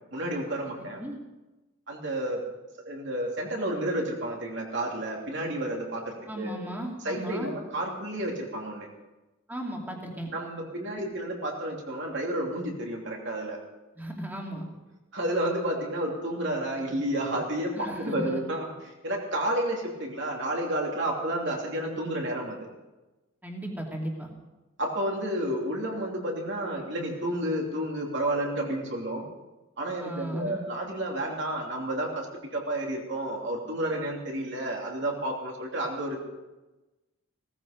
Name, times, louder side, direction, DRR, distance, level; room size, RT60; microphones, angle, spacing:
voice 1, 0.1-1.0 1.9-2.4 2.8-6.6 7.0-8.9 10.3-13.6 15.1-22.6 24.8-29.2 29.8-36.2, right 1 dB, 55° right, -1 dB, 3.0 m, -31 dB
voice 2, 0.8-1.2 6.3-7.5 9.5-10.3 14.0-14.7 17.7-18.4 23.4-24.3 30.0-30.5, right 1 dB, 10° right, -1 dB, 2.6 m, -36 dB
17.0 x 14.5 x 5.2 m, 1.1 s
head